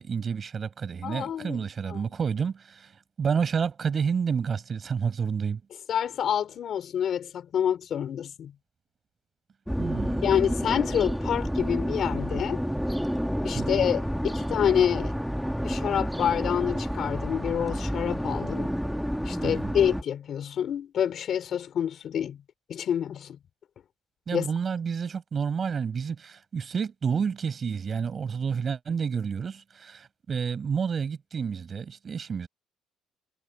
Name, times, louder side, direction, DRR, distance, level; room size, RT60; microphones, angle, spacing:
voice 1, 0.0-2.9 3.2-5.6 9.8-10.3 13.5-13.8 19.4-19.7 24.3-32.5, right 6 dB, 30° right, 5.2 m, -30 dB
voice 2, 1.0-2.0 5.9-8.5 10.2-12.6 13.4-15.1 15.6-18.7 19.2-22.4 22.7-23.4 24.3-24.5, left 9 dB, 40° left, 4.7 m, -27 dB
sound 1, 9.7-20.0, equal, ahead, 1.4 m, -29 dB
cardioid pair, 175°, 0 cm